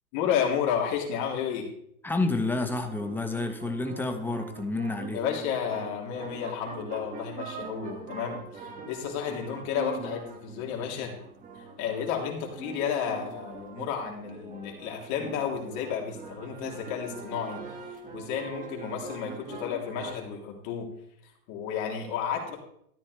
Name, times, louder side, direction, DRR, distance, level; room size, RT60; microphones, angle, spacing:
voice 1, 0.1-1.7 5.1-11.1 11.5-17.6 18.1-20.9 21.2-22.6, left 8 dB, 40° left, 0 dB, 3.4 m, -32 dB
voice 2, 2.0-5.2, left 2 dB, 5° left, 5 dB, 1.0 m, -29 dB
sound 1, 2.3-20.2, right 4 dB, 20° right, 1.9 m, -43 dB
13.5 x 12.5 x 3.4 m, 0.69 s
hypercardioid pair, 130°, 44 cm